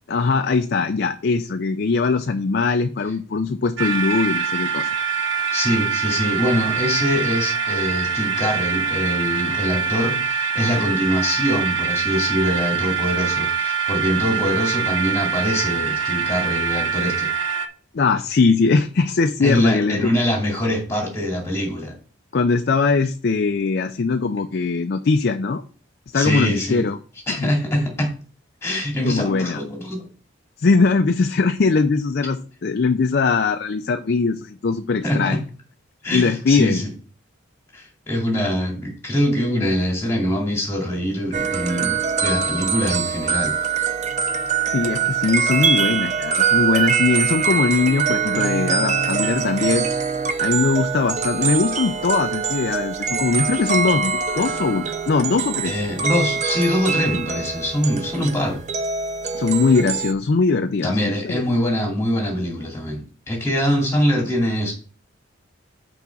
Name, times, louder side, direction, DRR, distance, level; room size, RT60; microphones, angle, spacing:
voice 1, 0.1-4.9 17.9-20.1 22.3-25.6 26.1-27.0 27.3-27.5 29.0-29.6 30.6-35.4 36.1-36.8 44.7-49.9 50.4-55.8 59.3-61.0 61.2-61.4, left 4 dB, 50° left, 7 dB, 0.4 m, -21 dB
sound 1, 3.8-17.7, right 6 dB, 65° right, 0.8 m, -24 dB
voice 2, 5.5-17.3 19.4-21.9 26.1-26.8 27.3-28.1 28.6-30.1 35.0-35.4 36.0-36.9 37.7-43.9 55.6-58.6 60.8-64.7, equal, 15° left, -1 dB, 2.5 m, -23 dB
sound 2, 41.3-60.1, right 6 dB, 35° right, 0.5 m, -23 dB
5.9 x 5.0 x 5.8 m, 0.41 s
head